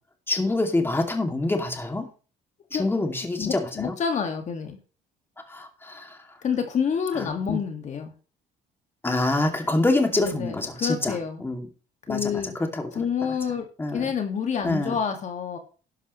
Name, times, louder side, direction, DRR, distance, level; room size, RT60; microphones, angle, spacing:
voice 1, 0.3-2.1 2.7-3.9 5.5-6.2 7.2-7.6 9.0-11.7 12.1-12.4 12.7-12.9 13.8-14.1 14.6-15.0, left 2 dB, 15° left, 4 dB, 2.4 m, -26 dB
voice 2, 3.4-4.8 6.4-8.1 10.2-11.4 12.1-12.5 12.9-13.7 13.9-15.6, left 7 dB, 45° left, 4 dB, 1.9 m, -28 dB
12.0 x 11.0 x 3.1 m, 0.37 s
cardioid pair, 110°, 17 cm